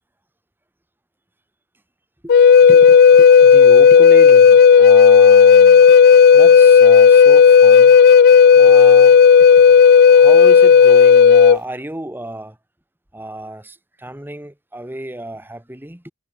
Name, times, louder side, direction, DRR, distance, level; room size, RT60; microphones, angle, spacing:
Wind instrument woodwind instrument, 2.3-11.6, left 6 dB, 45° left, 0.3 m, -8 dB
voice 1, 2.7-6.0 6.3-8.0 8.5-9.5 10.1-12.6 13.1-16.1, right 1 dB, 10° right, 1.4 m, -32 dB
head